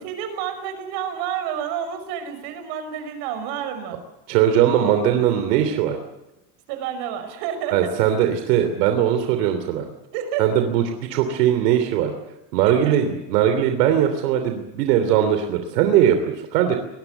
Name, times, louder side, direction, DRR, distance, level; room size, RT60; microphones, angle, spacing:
voice 1, 0.0-4.0 6.7-7.9 10.1-10.4 12.6-13.0, right 9 dB, 60° right, 9 dB, 5.8 m, -29 dB
voice 2, 4.3-6.0 7.7-9.9 10.4-10.8 11.1-12.1 12.5-16.8, right 10 dB, 85° right, 7 dB, 3.2 m, -20 dB
25.0 x 21.5 x 8.1 m, 0.98 s
cardioid pair, 165°, 47 cm